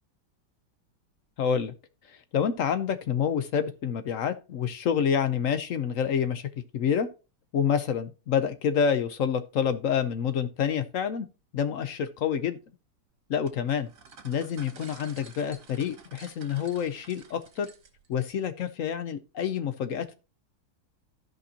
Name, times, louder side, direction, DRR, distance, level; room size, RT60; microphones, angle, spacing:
voice 1, 1.4-1.7 2.3-7.1 7.5-11.3 11.5-12.6 13.3-13.9 14.2-17.7 18.1-20.1, left 7 dB, 65° left, 0.8 m, -28 dB
sound 1, 13.5-18.1, right 4 dB, 50° right, 1.5 m, -51 dB
14.0 x 5.2 x 2.8 m
omnidirectional pair, 1.9 m